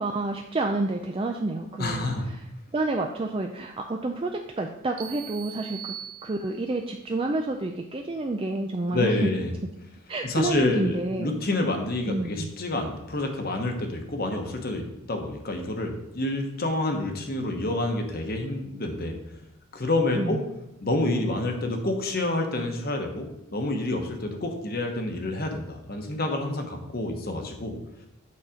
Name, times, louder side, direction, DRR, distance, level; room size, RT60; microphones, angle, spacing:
voice 1, 0.0-2.4 2.7-5.9 6.2-9.3 10.1-11.4 12.1-12.5 20.2-20.4, right 2 dB, 25° right, 3 dB, 0.4 m, -29 dB
voice 2, 1.8-2.3 8.9-9.5 10.2-14.8 15.1-19.1 19.7-20.4 20.8-27.7, left 2 dB, 45° left, 4 dB, 1.1 m, -28 dB
sound 1, 5.0-6.8, right 10 dB, 70° right, 1.1 m, -41 dB
8.6 x 4.1 x 5.0 m, 0.87 s
head